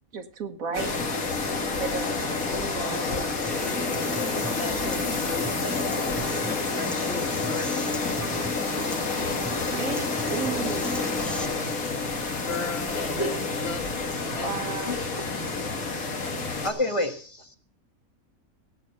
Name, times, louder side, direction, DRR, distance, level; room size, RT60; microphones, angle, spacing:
voice 1, 0.1-0.9 1.8-2.2 2.8-3.0 9.1-11.0 14.4-15.0, right 5 dB, 80° right, 8 dB, 1.7 m, -34 dB
sound 1, 0.7-16.7, left 3 dB, 80° left, 2.3 m, -29 dB
voice 2, 0.7-1.0 2.5-6.0 6.7-7.9 12.4-13.8 14.3-14.5 14.8-15.3, left 3 dB, 50° left, 6 dB, 1.7 m, -37 dB
Human voice / Acoustic guitar, 3.5-11.4, equal, ahead, 0.4 m, -38 dB
voice 3, 15.8-16.2 16.6-17.6, left 1 dB, 20° left, 6 dB, 1.4 m, -29 dB
17.5 x 7.6 x 5.5 m, 0.43 s
omnidirectional pair, 1.5 m